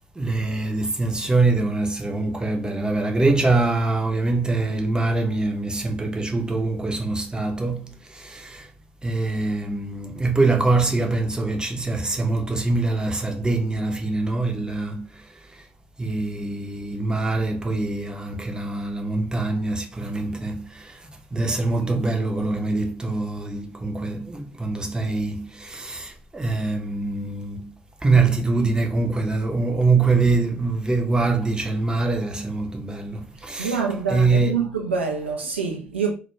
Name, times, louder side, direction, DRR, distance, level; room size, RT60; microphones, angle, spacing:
voice 1, 0.2-8.7 9.0-15.6 16.0-27.7 28.0-34.8, right 3 dB, 15° right, 0.6 m, -24 dB
voice 2, 33.6-36.1, right 5 dB, 85° right, 0.3 m, -26 dB
2.2 x 2.1 x 2.9 m
figure-of-eight pair, 45°, 6 cm